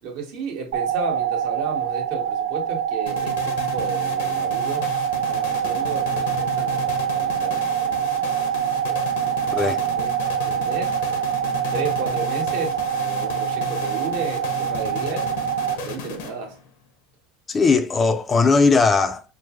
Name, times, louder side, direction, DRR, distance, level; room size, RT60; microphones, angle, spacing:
voice 1, 0.0-4.9 5.2-10.1 10.4-10.9 11.7-15.4 15.8-16.6, right 4 dB, 70° right, 1.4 m, -33 dB
sound 1, 0.7-15.8, right 9 dB, 85° right, 0.3 m, -25 dB
sound 2, 3.1-16.7, left 5 dB, 90° left, 1.0 m, -34 dB
voice 2, 9.5-9.8 17.5-19.2, left 4 dB, 25° left, 0.3 m, -18 dB
4.6 x 2.1 x 3.1 m
supercardioid pair, 125°, 0 cm